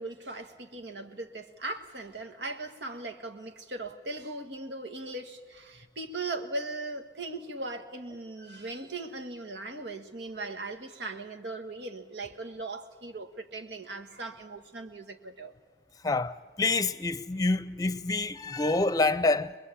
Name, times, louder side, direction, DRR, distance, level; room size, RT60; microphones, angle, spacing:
voice 1, 0.0-15.5, right 2 dB, 85° right, 1.8 m, -39 dB
voice 2, 16.0-19.6, left 3 dB, 20° left, 0.7 m, -27 dB
23.0 x 22.0 x 8.4 m
head